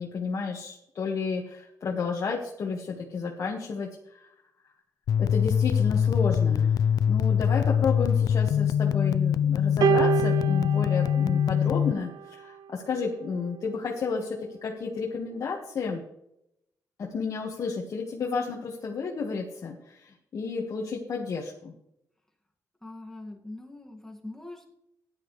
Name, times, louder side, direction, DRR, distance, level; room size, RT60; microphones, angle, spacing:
voice 1, 0.0-4.3 5.2-6.7 7.1-16.0 17.0-21.7, left 5 dB, 55° left, -1 dB, 1.6 m, -32 dB
sound 1, 5.1-11.9, left 8 dB, 80° left, 0.4 m, -23 dB
sound 2, 9.8-12.3 13.3-13.5, right 8 dB, 85° right, 0.5 m, -28 dB
voice 2, 22.8-24.7, left 2 dB, 5° left, 1 dB, 2.0 m, -42 dB
15.0 x 10.5 x 3.3 m, 0.80 s
wide cardioid pair, 145°, 6 cm